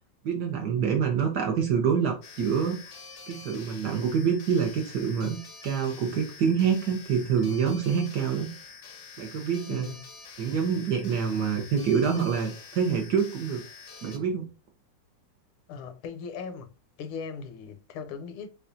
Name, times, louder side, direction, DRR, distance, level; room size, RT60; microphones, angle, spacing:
voice 1, 0.2-2.8 3.3-8.5 9.2-9.9 10.4-13.6 14.0-14.5, right 7 dB, 65° right, 1.1 m, -26 dB
sound 1, 2.2-14.2, left 5 dB, 60° left, 0.7 m, -47 dB
voice 2, 9.7-10.1 15.7-16.7 17.0-18.5, left 5 dB, 85° left, 1.5 m, -38 dB
6.7 x 2.3 x 2.6 m
omnidirectional pair, 2.3 m